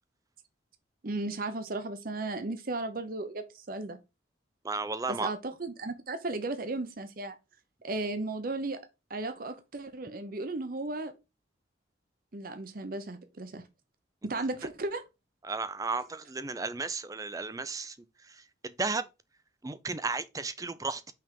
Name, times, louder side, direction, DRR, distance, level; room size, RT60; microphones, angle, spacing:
voice 1, 1.0-4.0 5.2-7.4 7.8-11.1 12.3-13.6 14.2-15.0, right 2 dB, 45° right, 0.7 m, -35 dB
voice 2, 4.6-5.3 15.4-18.0 18.2-19.1 19.6-21.1, right 3 dB, 20° right, 0.4 m, -34 dB
5.7 x 3.4 x 5.1 m
head